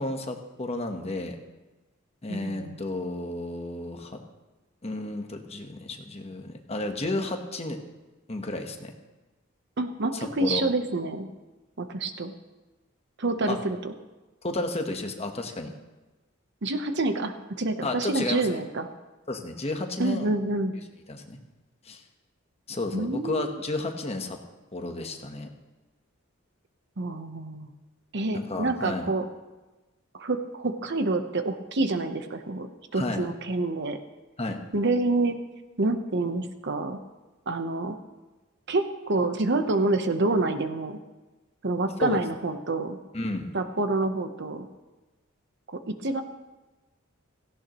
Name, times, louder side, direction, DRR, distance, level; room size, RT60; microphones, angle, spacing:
voice 1, 0.0-1.4 2.2-4.2 4.8-7.8 8.3-8.9 10.1-10.6 13.5-13.6 14.4-15.7 17.8-18.6 19.3-20.3 21.1-21.4 21.8-22.0 22.7-24.4 24.7-25.5 28.3-29.1 32.9-33.3 34.4-34.6 42.0-42.2 43.1-43.5, left 2 dB, 30° left, 4 dB, 1.2 m, -32 dB
voice 2, 2.3-2.8 9.8-11.3 11.8-12.3 13.2-13.9 16.6-18.9 20.0-20.8 22.9-23.6 27.0-27.7 28.1-29.3 30.1-32.7 32.9-34.0 34.7-35.4 35.8-37.0 37.5-38.0 38.7-41.0 41.6-43.0 43.5-44.7 45.7-46.2, right 2 dB, 60° right, 8 dB, 0.9 m, -27 dB
17.0 x 15.5 x 3.1 m, 1.1 s
head